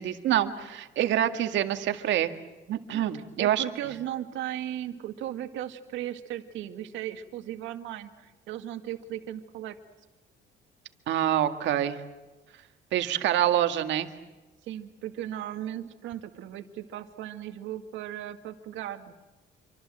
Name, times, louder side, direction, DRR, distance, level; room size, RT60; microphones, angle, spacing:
voice 1, 0.0-2.3 2.7-3.6 11.1-12.0 12.9-14.1, right 11 dB, 70° right, 7 dB, 2.0 m, -26 dB
voice 2, 3.1-9.8 14.6-19.1, right 12 dB, 90° right, 7 dB, 2.1 m, -37 dB
27.0 x 25.0 x 7.8 m, 1.2 s
cardioid pair, 130°, 19 cm